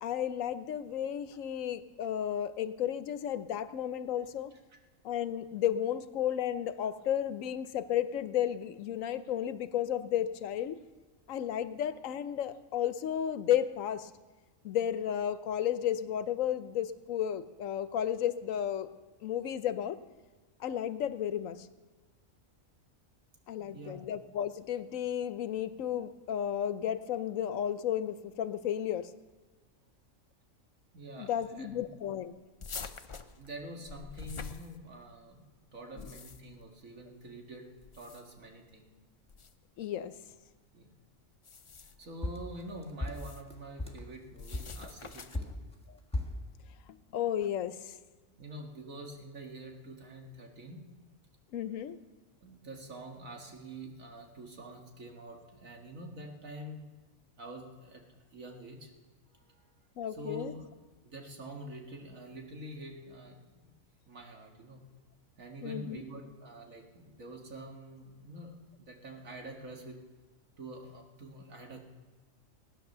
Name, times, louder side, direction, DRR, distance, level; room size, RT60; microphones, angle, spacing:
voice 1, 0.0-4.5 5.0-10.8 11.3-14.1 14.6-18.9 19.2-20.0 20.6-21.7 23.5-29.1 31.2-32.3 36.0-36.1 39.8-40.1 45.9-46.0 47.1-47.8 51.5-52.0 60.0-60.6 65.6-66.0, left 10 dB, 80° left, 13 dB, 1.1 m, -33 dB
voice 2, 23.6-24.1 30.9-31.8 33.3-37.7 37.9-38.9 40.7-40.9 42.0-45.5 48.3-50.8 52.4-56.9 57.4-58.1 58.3-58.9 59.5-59.6 60.1-60.7 61.0-63.8 64.1-64.9 65.4-70.0 70.6-71.8, right 1 dB, 80° right, 1 dB, 2.4 m, -46 dB
sound 1, 32.6-35.2 35.8-36.6 37.8-38.5 39.3-39.5 41.3-42.1 43.0-43.5 44.4-45.5, left 5 dB, 35° left, 0.5 m, -46 dB
sound 2, 42.2-44.1 44.5-46.4, left 1 dB, 5° left, 1.5 m, -36 dB
17.5 x 10.0 x 6.8 m, 1.2 s
omnidirectional pair, 1.4 m